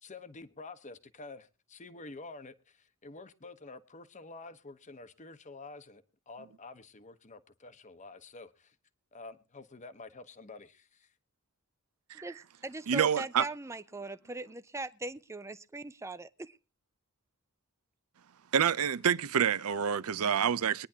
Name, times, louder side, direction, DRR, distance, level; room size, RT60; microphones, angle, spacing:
voice 1, 0.0-8.8 9.1-11.1, left 3 dB, 35° left, 1.0 m, -49 dB
voice 2, 12.1-16.6, right 2 dB, 15° right, 0.6 m, -40 dB
voice 3, 12.9-13.4 18.5-20.9, right 7 dB, 75° right, 0.6 m, -27 dB
23.5 x 10.0 x 2.8 m
head